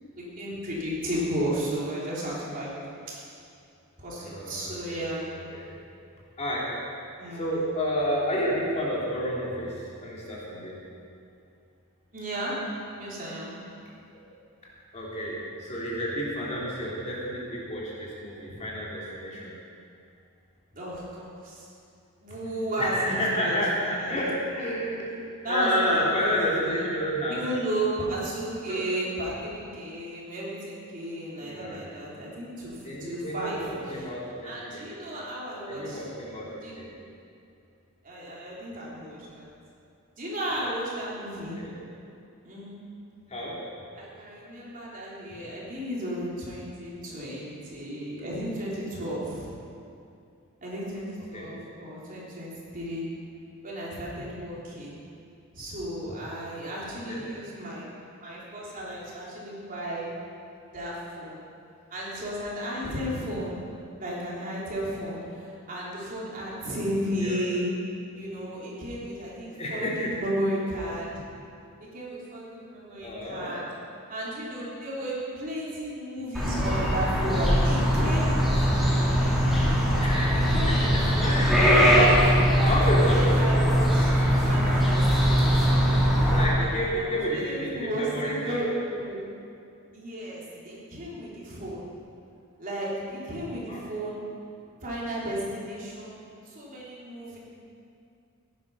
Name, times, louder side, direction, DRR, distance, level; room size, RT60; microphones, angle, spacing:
voice 1, 0.1-2.7 3.1-3.2 4.0-5.3 7.2-7.6 12.1-12.6 13.0-13.5 20.7-21.7 22.2-24.1 25.4-26.3 26.6-26.9 27.3-32.7 33.0-33.6 34.4-36.0 36.6-36.8 38.0-39.5 40.2-41.6 42.4-42.8 44.0-49.5 50.6-53.1 53.6-55.0 55.5-57.9 58.2-60.1 60.7-61.4 61.9-63.6 64.0-67.7 68.1-71.1 71.9-73.7 74.1-78.9 80.3-81.4 81.9-82.1 82.5-85.7 86.3-86.5 86.9-89.2 89.9-91.9 92.6-94.2 94.8-96.2 96.5-97.4, right 1 dB, 40° right, -6 dB, 3.6 m, -34 dB
voice 2, 4.2-5.1 5.5-5.7 6.4-6.6 7.3-10.8 14.1-14.2 14.9-19.5 22.8-25.1 25.4-27.4 28.6-28.8 31.4-31.9 32.8-34.8 35.7-36.9 41.3-41.7 43.3-43.5 51.3-51.5 57.1-57.2 67.2-67.4 69.5-70.1 73.0-73.5 80.0-80.5 81.2-82.1 82.6-83.6 86.3-88.6 93.6-93.9, equal, 30° left, -6 dB, 3.3 m, -30 dB
sound 1, 76.3-86.4, equal, ahead, 3.5 m, -21 dB
16.5 x 10.5 x 5.6 m, 2.5 s
head